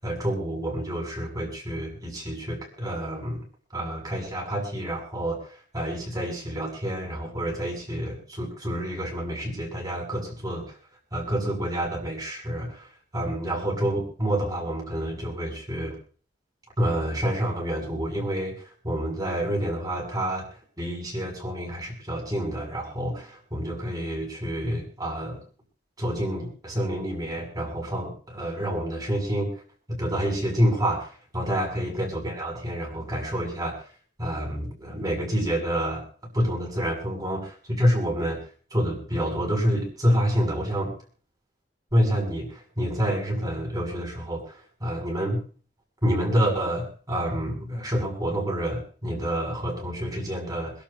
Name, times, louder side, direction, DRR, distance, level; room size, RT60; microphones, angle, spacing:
voice 1, 0.0-3.4 3.7-10.7 11.1-12.9 13.1-16.0 16.8-18.6 18.8-20.4 20.8-25.4 26.0-29.5 29.9-33.8 34.2-36.0 36.3-38.4 38.7-40.9 41.9-45.4 46.0-50.7, equal, 20° right, 0 dB, 6.7 m, -28 dB
27.0 x 12.0 x 2.7 m, 0.43 s
head